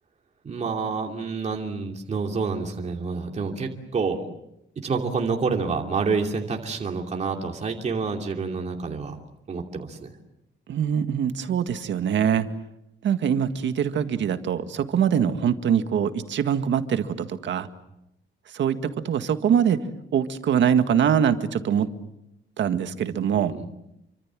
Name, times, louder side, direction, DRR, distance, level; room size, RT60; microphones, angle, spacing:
voice 1, 0.4-4.3 4.8-9.2 9.5-10.1 23.5-23.7, right 4 dB, 35° right, 2 dB, 2.8 m, -28 dB
voice 2, 10.7-12.5 13.0-17.7 18.5-19.8 20.1-21.9 22.6-23.6, right 8 dB, 70° right, 8 dB, 1.9 m, -23 dB
28.5 x 25.0 x 7.6 m, 0.82 s
wide cardioid pair, 175°, 20 cm